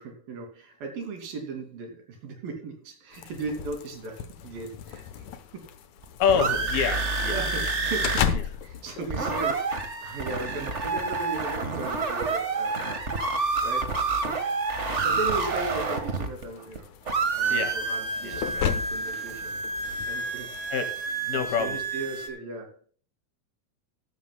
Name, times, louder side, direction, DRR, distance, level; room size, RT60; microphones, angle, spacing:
voice 1, 0.0-5.0 5.5-5.6 7.3-13.3 13.6-14.0 14.3-14.4 14.8-16.9 17.4-19.6 20.1-20.5 21.3-22.9, right 3 dB, 75° right, 4 dB, 4.5 m, -37 dB
sound 1, 3.1-20.7, left 8 dB, 65° left, 2.1 m, -37 dB
sound 2, 6.0-8.3 8.5-8.6 8.9-16.8 17.1-22.3, right 4 dB, 60° right, 0.7 m, -28 dB
voice 2, 6.2-7.7 8.3-8.4 17.5-17.8 18.2-18.4 20.7-21.8, left 7 dB, 85° left, 6 dB, 3.9 m, -27 dB
14.5 x 14.0 x 2.3 m, 0.43 s
omnidirectional pair, 4.2 m